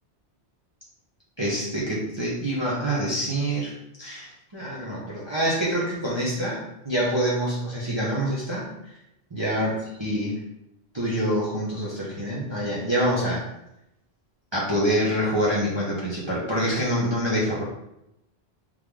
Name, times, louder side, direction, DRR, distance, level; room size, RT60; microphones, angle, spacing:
voice 1, 1.4-3.7 4.0-6.6 6.8-8.7 9.3-9.7 10.0-10.3 10.9-13.4 14.5-17.6, equal, 25° right, -7 dB, 0.9 m, -26 dB
3.6 x 3.2 x 3.6 m, 0.83 s
omnidirectional pair, 1.1 m